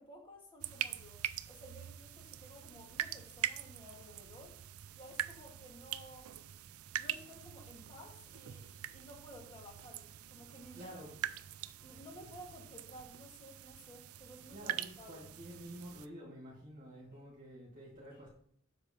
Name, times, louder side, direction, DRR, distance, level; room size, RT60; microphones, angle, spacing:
voice 1, 0.0-4.7 5.0-6.3 7.0-11.0 11.8-15.3 17.1-17.2 18.1-18.2, equal, 20° left, 0 dB, 2.1 m, -55 dB
sound 1, 0.6-16.1, right 11 dB, 85° right, 0.5 m, -43 dB
voice 2, 10.7-11.1 14.5-18.3, equal, 35° right, -3 dB, 2.0 m, -50 dB
7.9 x 6.3 x 5.3 m, 0.64 s
head